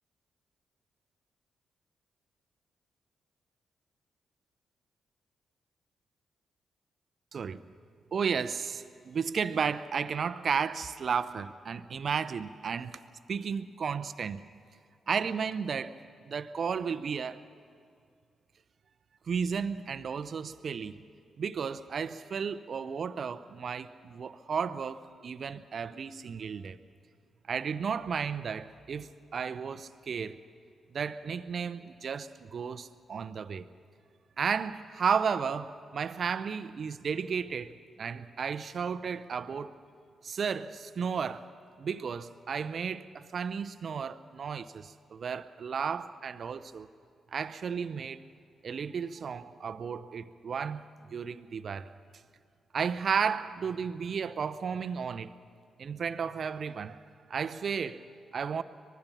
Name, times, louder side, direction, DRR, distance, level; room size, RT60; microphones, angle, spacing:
voice 1, 7.3-7.6 8.1-13.0 13.3-14.4 15.1-15.9 16.2-17.4 19.3-20.9 21.4-26.8 27.5-30.4 30.9-33.7 34.4-39.8 40.2-41.5 41.8-46.9 47.3-48.2 48.6-50.9 51.1-51.9 52.7-55.3 55.8-57.0 57.3-58.0 58.3-58.6, right 6 dB, 55° right, 0.7 m, -33 dB
24.0 x 20.0 x 5.8 m
hypercardioid pair, 40°, 0 cm